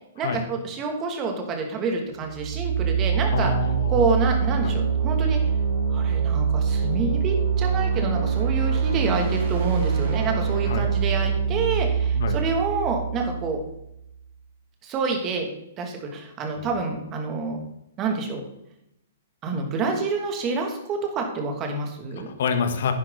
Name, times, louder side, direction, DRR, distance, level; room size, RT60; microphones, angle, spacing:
voice 1, 0.1-3.5 3.9-5.4 5.9-13.6 14.8-15.5 15.8-17.6 18.0-18.4 19.4-22.3, right 4 dB, 25° right, 3 dB, 2.7 m, -27 dB
sound 1, 2.2-14.0, right 6 dB, 55° right, 4.7 m, -24 dB
voice 2, 3.3-4.2 4.6-4.8 10.7-10.9 12.1-12.4 16.6-16.7 22.2-22.9, left 5 dB, 60° left, 8 dB, 1.7 m, -27 dB
10.5 x 10.5 x 4.2 m, 0.82 s
figure-of-eight pair, 120°, 0 cm